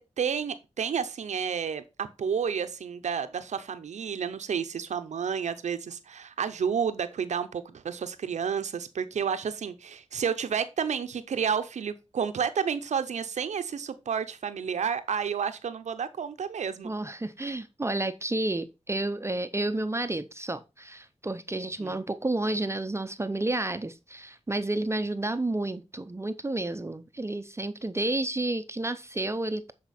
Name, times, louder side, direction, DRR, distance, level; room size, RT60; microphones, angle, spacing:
voice 1, 0.0-16.9 21.8-22.0, right 7 dB, 90° right, 0.6 m, -31 dB
voice 2, 16.8-29.7, right 2 dB, 25° right, 0.6 m, -31 dB
8.2 x 4.4 x 4.2 m
cardioid pair, 55°, 12 cm